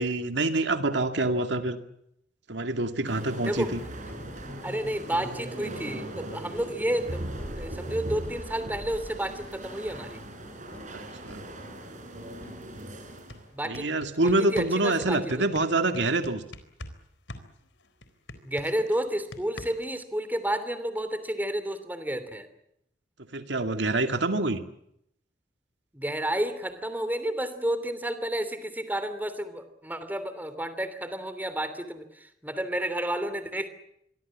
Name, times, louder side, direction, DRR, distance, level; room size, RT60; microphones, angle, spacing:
voice 1, 0.0-1.8 2.5-3.8 10.9-11.4 13.6-16.4 23.3-24.6, right 2 dB, 70° right, 7 dB, 2.3 m, -26 dB
sound 1, 3.0-13.5, right 1 dB, 45° right, 7.0 m, -39 dB
sound 2, 3.5-12.9, equal, 10° left, 8.0 m, -51 dB
voice 2, 4.6-10.2 13.5-13.9 14.2-15.3 18.4-22.5 25.9-33.7, right 1 dB, 10° right, 11 dB, 3.0 m, -31 dB
sound 3, 12.7-12.8 13.1-17.0 17.3-20.0, left 1 dB, 70° left, 4.0 m, -43 dB
27.5 x 23.0 x 7.4 m, 0.75 s
head